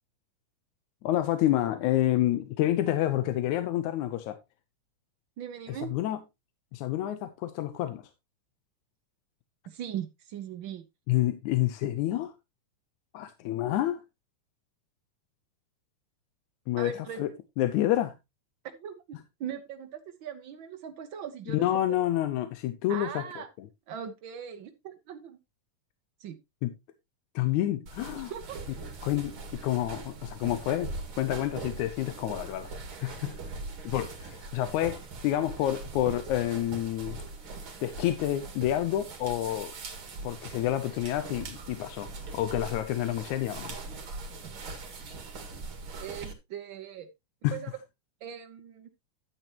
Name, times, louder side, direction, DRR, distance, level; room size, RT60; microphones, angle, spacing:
voice 1, 1.0-4.4 5.7-6.2 6.7-8.1 11.1-12.3 13.1-14.0 16.7-17.3 17.6-18.1 19.1-19.2 21.5-23.7 26.6-26.7 27.4-28.3 29.0-32.7 33.0-33.4 33.8-37.2 37.8-39.7 40.2-43.8 47.4-47.6, left 13 dB, 75° left, 2.1 m, -29 dB
voice 2, 5.4-5.9 9.7-10.8 16.8-17.2 18.6-21.7 22.9-23.5 23.9-25.4 26.2-26.4 28.1-28.6 46.0-47.1 47.5-47.7 48.2-48.9, right 9 dB, 85° right, 1.0 m, -40 dB
sound 1, 27.9-46.3, right 3 dB, 45° right, 2.4 m, -41 dB
10.5 x 8.9 x 2.9 m
omnidirectional pair, 3.5 m